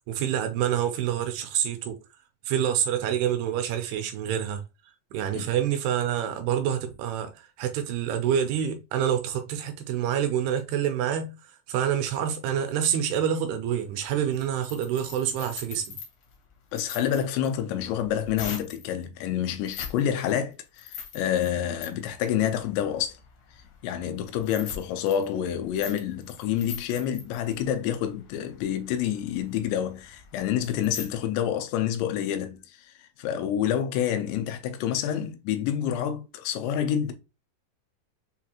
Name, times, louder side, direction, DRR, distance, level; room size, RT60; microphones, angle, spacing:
voice 1, 0.0-2.0 2.5-4.6 5.1-16.0, right 9 dB, 80° right, 2.3 m, -27 dB
sound 1, 13.9-18.9 19.6-20.0 20.3-31.1, left 7 dB, 75° left, 1.8 m, -43 dB
voice 2, 16.7-23.2 23.8-32.8 33.2-37.1, left 9 dB, 90° left, 2.9 m, -28 dB
6.6 x 2.4 x 2.8 m
omnidirectional pair, 5.0 m